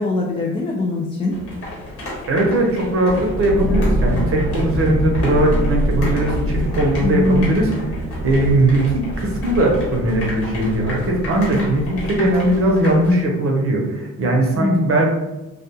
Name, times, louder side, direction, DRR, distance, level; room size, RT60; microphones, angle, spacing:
voice 1, 0.0-1.4 7.0-7.4 14.6-14.8, left 2 dB, 20° left, -1 dB, 0.3 m, -21 dB
sound 1, 1.3-13.1, left 1 dB, 50° left, 1.2 m, -33 dB
voice 2, 2.3-7.7 8.2-15.1, right 1 dB, 50° right, 0 dB, 0.7 m, -19 dB
sound 2, 3.1-12.8, equal, 10° right, 0.9 m, -25 dB
2.3 x 2.2 x 2.8 m, 1.0 s
cardioid pair, 90°, 30 cm